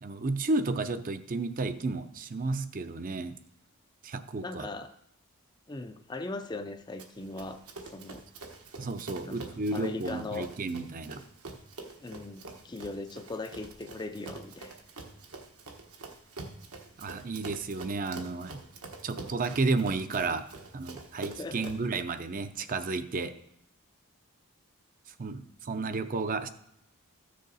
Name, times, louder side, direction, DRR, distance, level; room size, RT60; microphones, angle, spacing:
voice 1, 0.0-3.4 4.0-4.7 8.8-11.2 17.0-18.6 19.0-20.5 20.7-23.3 25.2-26.5, right 3 dB, 40° right, 10 dB, 0.5 m, -32 dB
voice 2, 4.4-4.9 5.7-7.6 7.9-8.2 9.2-9.4 9.7-10.5 12.0-14.7 21.4-21.7, left 2 dB, 20° left, 8 dB, 0.4 m, -39 dB
Run, 7.0-21.9, right 3 dB, 80° right, 1.3 m, -46 dB
13.5 x 6.5 x 4.0 m, 0.75 s
head